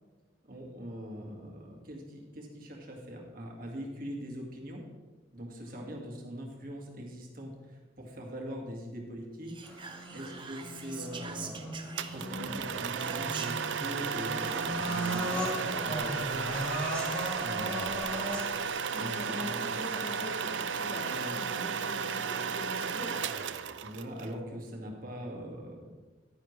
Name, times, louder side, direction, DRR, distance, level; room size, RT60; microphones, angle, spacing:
voice 1, 0.5-4.8 5.3-9.5 10.1-11.8 12.1-16.7 17.4-18.0 19.0-19.8 20.9-21.4 23.8-25.9, equal, 50° right, 0 dB, 1.9 m, -42 dB
Whispering, 9.5-12.5 13.0-13.7, right 6 dB, 25° right, 0.7 m, -44 dB
sound 1, 9.6-18.7, equal, 5° left, 1.6 m, -38 dB
voice 2, 10.0-10.4 18.9-23.1, equal, 10° right, -5 dB, 2.5 m, -43 dB
sound 2, 12.0-24.3, right 6 dB, 75° right, 0.5 m, -34 dB
11.0 x 9.8 x 3.2 m, 1.3 s
head